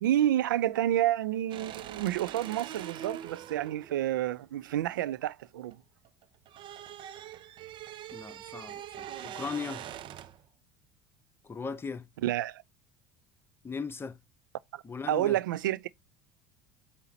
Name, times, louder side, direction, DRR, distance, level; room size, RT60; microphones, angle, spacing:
voice 1, 0.0-5.8 12.2-12.6 14.7-15.9, right 12 dB, 85° right, 0.4 m, -29 dB
sound 1, 1.5-5.7 6.0-10.4, right 10 dB, 50° right, 0.7 m, -43 dB
voice 2, 8.1-9.8 11.4-12.1 13.6-14.2 14.8-15.4, left 5 dB, 20° left, 0.9 m, -38 dB
8.1 x 2.9 x 4.2 m
hypercardioid pair, 75°, 10 cm